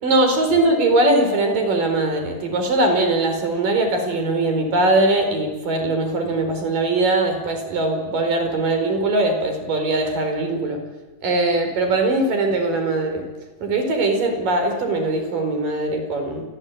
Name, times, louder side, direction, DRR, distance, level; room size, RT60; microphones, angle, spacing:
voice 1, 0.0-10.8 11.2-13.2 13.6-16.4, right 2 dB, 80° right, 6 dB, 6.3 m, -21 dB
28.0 x 21.5 x 8.7 m, 1.2 s
omnidirectional pair, 3.8 m